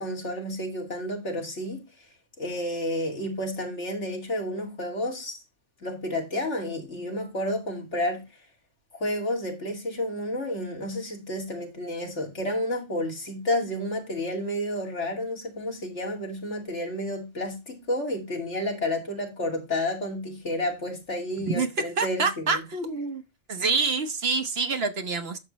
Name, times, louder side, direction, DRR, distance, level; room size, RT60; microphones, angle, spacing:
voice 1, 0.0-1.8 2.4-5.4 5.8-8.2 8.9-22.6, left 1 dB, 65° left, 2.9 m, -30 dB
voice 2, 22.0-23.2 23.5-25.4, right 4 dB, 55° right, 1.2 m, -26 dB
11.0 x 7.4 x 3.1 m
omnidirectional pair, 1.3 m